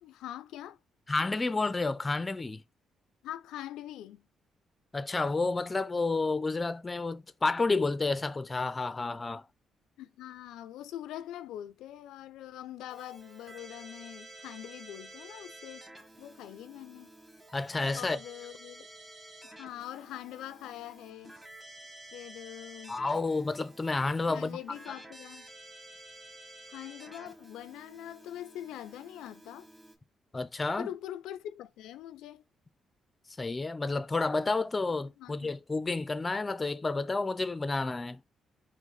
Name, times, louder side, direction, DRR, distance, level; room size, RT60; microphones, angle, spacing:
voice 1, 0.0-0.8 3.2-4.2 10.0-15.8 16.2-17.1 18.0-18.9 19.4-21.3 22.1-23.0 24.3-25.5 26.7-29.7 30.8-32.4 35.2-35.5, left 12 dB, 90° left, 0.3 m, -43 dB
voice 2, 1.1-2.6 4.9-9.5 17.5-18.2 22.9-24.6 30.3-30.9 33.4-38.2, left 3 dB, 25° left, 0.4 m, -30 dB
Keyboard (musical), 12.9-30.0, right 2 dB, 15° right, 1.5 m, -51 dB
4.8 x 2.1 x 4.0 m
cardioid pair, 90°, 0 cm